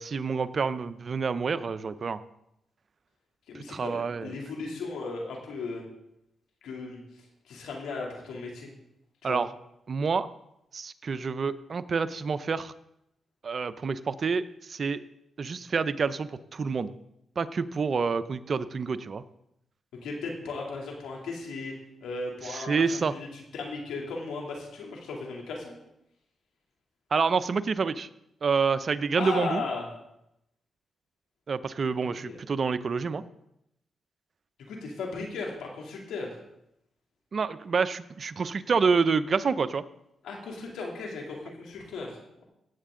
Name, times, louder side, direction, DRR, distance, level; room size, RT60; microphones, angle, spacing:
voice 1, 0.0-2.2 3.7-4.3 9.2-9.5 9.9-10.3 10.7-12.7 13.4-15.0 15.4-16.9 17.4-19.2 22.5-23.1 27.1-28.1 28.4-29.6 31.5-33.2 37.3-39.8, right 5 dB, 50° right, 13 dB, 0.6 m, -28 dB
voice 2, 3.5-5.8 6.6-7.0 7.4-8.7 9.2-9.4 20.0-21.7 22.0-25.7 29.2-29.9 32.2-32.4 34.7-36.4 40.2-42.4, left 3 dB, 85° left, -1 dB, 2.9 m, -36 dB
17.0 x 8.3 x 3.8 m, 0.81 s
cardioid pair, 70°, 0 cm